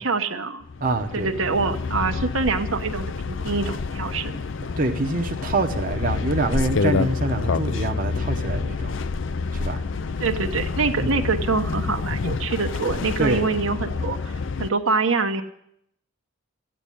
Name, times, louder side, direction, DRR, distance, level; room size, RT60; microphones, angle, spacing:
voice 1, 0.0-0.6 1.1-4.4 10.2-15.4, right 4 dB, 75° right, 5 dB, 1.2 m, -25 dB
sound 1, 0.6-14.7, left 4 dB, 60° left, 0.5 m, -28 dB
voice 2, 0.8-1.3 4.8-8.9 9.5-9.8 11.0-11.1 13.2-13.5, right 2 dB, 40° right, 3 dB, 1.0 m, -25 dB
14.0 x 9.0 x 10.0 m, 0.72 s
head